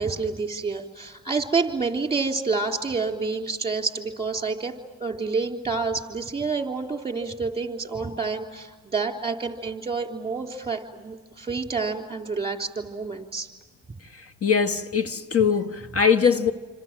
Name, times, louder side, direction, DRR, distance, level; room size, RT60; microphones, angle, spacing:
voice 1, 0.0-4.7 5.0-13.5, right 4 dB, 20° right, 3.5 m, -28 dB
voice 2, 14.1-16.5, left 6 dB, 50° left, 1.4 m, -22 dB
27.5 x 26.0 x 7.5 m
cardioid pair, 90°, 30 cm